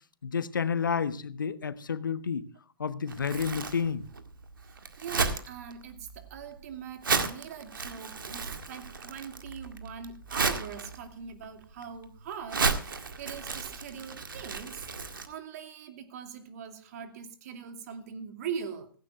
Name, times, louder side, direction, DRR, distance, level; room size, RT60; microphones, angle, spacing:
voice 1, 0.2-2.5 2.8-4.0, left 6 dB, 65° left, 1.1 m, -30 dB
Crumpling crinkling, 3.1-15.3, right 4 dB, 70° right, 1.9 m, -34 dB
voice 2, 5.0-14.8 15.3-18.9, right 7 dB, 45° right, 2.5 m, -42 dB
17.0 x 16.0 x 2.4 m
figure-of-eight pair, 115°, 12 cm